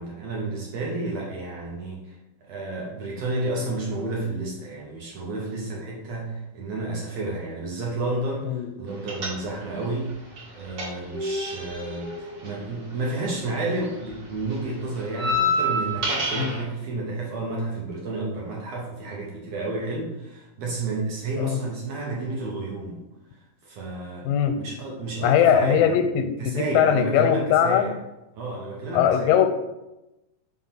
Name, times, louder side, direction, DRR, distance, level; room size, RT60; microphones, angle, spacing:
voice 1, 0.0-2.2 2.4-10.1 10.5-23.0 23.6-24.3 24.6-26.1 26.4-27.9 28.4-29.3, right 2 dB, 65° right, -2 dB, 1.7 m, -31 dB
sound 1, 9.1-9.8 10.1-13.5 13.7-16.6, left 1 dB, 50° right, 2.1 m, -28 dB
voice 2, 24.2-24.6 25.2-27.9 28.9-29.5, left 9 dB, 90° left, 8 dB, 2.3 m, -20 dB
5.2 x 3.9 x 5.8 m, 0.97 s
omnidirectional pair, 3.9 m